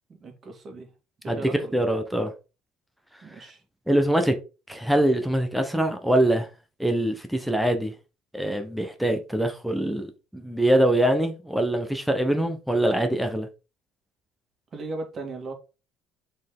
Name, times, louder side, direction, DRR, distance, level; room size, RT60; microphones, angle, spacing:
voice 1, 0.2-0.9 1.2-1.8 3.2-3.6 14.7-15.5, right 2 dB, 35° right, 2.4 m, -37 dB
voice 2, 1.3-2.3 3.9-4.3 4.7-6.5 6.8-7.9 8.3-13.5, right 1 dB, ahead, 1.0 m, -23 dB
6.1 x 4.4 x 3.8 m
cardioid pair, 115°, 0 cm